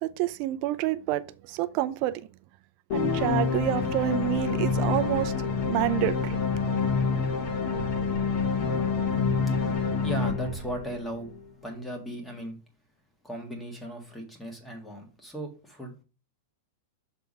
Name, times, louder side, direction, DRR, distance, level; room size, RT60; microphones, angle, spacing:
voice 1, 0.0-2.3 2.9-5.3 5.7-6.4, right 15 dB, 45° right, 0.6 m, -28 dB
sound 1, 2.9-11.3, left 5 dB, 45° left, 1.4 m, -27 dB
voice 2, 9.5-11.3 11.6-12.6 13.2-16.0, equal, 5° left, 1.7 m, -37 dB
6.7 x 3.5 x 5.4 m
supercardioid pair, 150°, 0 cm